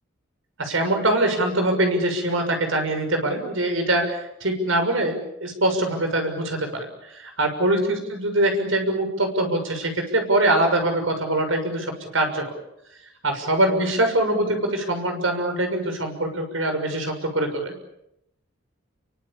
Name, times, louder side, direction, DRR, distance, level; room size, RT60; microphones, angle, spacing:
voice 1, 0.6-12.5 13.2-17.7, right 1 dB, 90° right, 5 dB, 6.6 m, -23 dB
30.0 x 24.0 x 7.3 m, 0.83 s
head